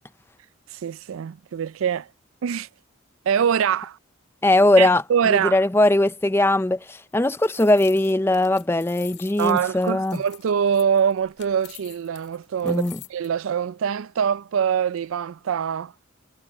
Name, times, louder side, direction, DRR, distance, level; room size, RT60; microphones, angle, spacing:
voice 1, 0.7-2.1 2.4-2.7 3.3-4.0 4.8-5.6 9.4-12.8 13.1-15.9, right 7 dB, 75° right, 0.4 m, -24 dB
voice 2, 4.4-10.2 12.6-13.0, left 1 dB, 10° left, 0.4 m, -20 dB
sound 1, 7.0-13.3, left 15 dB, 55° left, 1.9 m, -46 dB
head